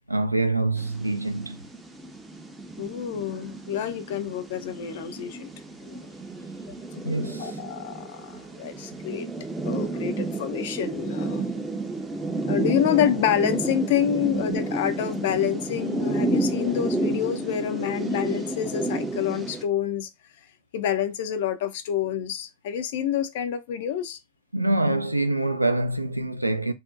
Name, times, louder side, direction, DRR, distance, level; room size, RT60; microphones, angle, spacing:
voice 1, 0.1-1.6 7.0-7.6 24.5-26.7, right 2 dB, 85° right, 0.3 m, -25 dB
sound 1, 0.8-19.6, right 2 dB, 10° right, 0.4 m, -31 dB
voice 2, 2.8-5.5 5.8-6.0 6.9-7.0 7.4-8.3 8.6-9.3 9.6-11.5 12.5-20.1 20.7-24.2, left 10 dB, 55° left, 0.4 m, -27 dB
2.6 x 2.0 x 2.5 m
figure-of-eight pair, 90°, 0 cm